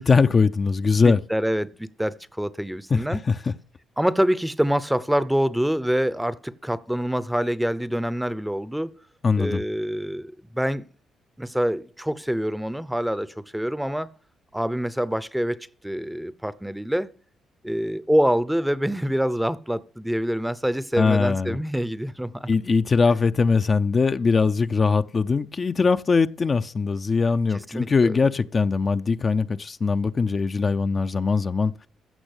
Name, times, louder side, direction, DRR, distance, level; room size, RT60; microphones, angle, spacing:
voice 1, 0.0-1.2 2.9-3.4 9.2-9.6 21.0-21.6 22.5-31.7, left 4 dB, 35° left, 0.5 m, -21 dB
voice 2, 1.0-3.2 4.0-9.0 9.4-10.8 11.4-14.1 14.5-15.6 15.8-17.1 17.6-22.5 27.7-28.1, equal, 5° right, 0.7 m, -25 dB
15.5 x 6.1 x 8.1 m
cardioid pair, 90°, 0 cm